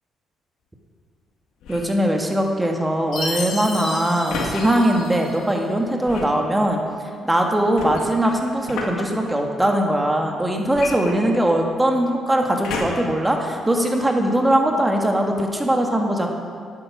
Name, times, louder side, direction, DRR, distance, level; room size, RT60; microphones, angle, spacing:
sound 1, 1.6-2.0 4.3-4.6 6.0-6.4 7.8-9.0 10.7-11.7 12.6-13.2 13.8-13.9, left 4 dB, 85° left, 1.8 m, -31 dB
voice 1, 1.7-6.8 7.2-16.3, right 1 dB, 10° right, 2 dB, 1.7 m, -20 dB
Chime, 3.1-5.6, left 2 dB, 65° left, 3.2 m, -32 dB
11.0 x 9.3 x 6.0 m, 2.1 s
cardioid pair, 90°, 0 cm